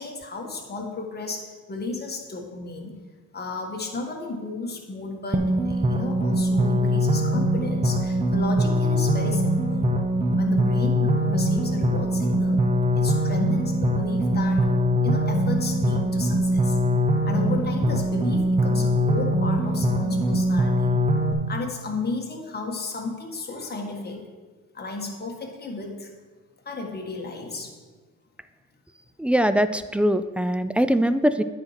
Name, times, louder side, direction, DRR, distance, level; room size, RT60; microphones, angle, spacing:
voice 1, 0.0-2.9 3.3-9.8 10.4-12.6 12.9-14.7 15.0-16.8 17.2-20.9 21.5-24.3 24.7-26.1 26.6-27.7, left 3 dB, 35° left, 1 dB, 1.6 m, -33 dB
sound 1, 5.3-21.3, equal, 20° right, 0.8 m, -22 dB
voice 2, 29.2-31.4, equal, 5° right, 12 dB, 0.3 m, -22 dB
8.9 x 4.4 x 5.8 m, 1.4 s
cardioid pair, 90°, 30 cm